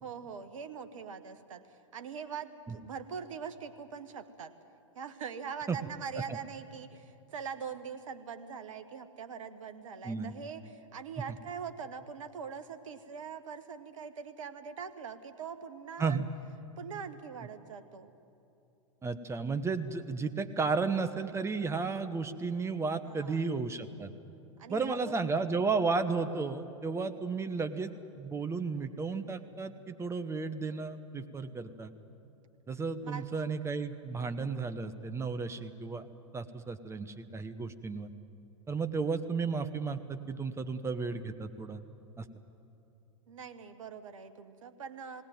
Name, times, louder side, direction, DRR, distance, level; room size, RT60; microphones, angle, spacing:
voice 1, 0.0-4.5 4.9-16.2 16.8-18.1 23.0-23.5 24.6-25.4 33.0-33.3 43.3-45.2, right 6 dB, 70° right, 9 dB, 1.4 m, -43 dB
voice 2, 19.0-24.1 24.7-31.9 32.7-36.1 36.3-38.1 38.7-41.8 42.2-42.3, right 4 dB, 15° right, 9 dB, 1.1 m, -33 dB
19.5 x 17.5 x 9.3 m, 2.8 s
hypercardioid pair, 95°, 17 cm